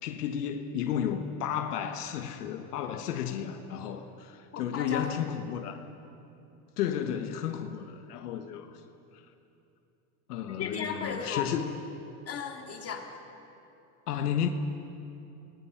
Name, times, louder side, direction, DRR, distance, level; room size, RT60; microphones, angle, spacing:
voice 1, 0.0-5.8 6.8-8.8 9.1-9.2 10.3-11.8 14.1-14.5, left 9 dB, 85° left, 6 dB, 1.4 m, -33 dB
voice 2, 4.5-5.1 10.5-11.5 12.3-13.1, left 6 dB, 30° left, 2 dB, 2.9 m, -35 dB
29.0 x 20.0 x 5.9 m, 2.8 s
supercardioid pair, 105°, 45 cm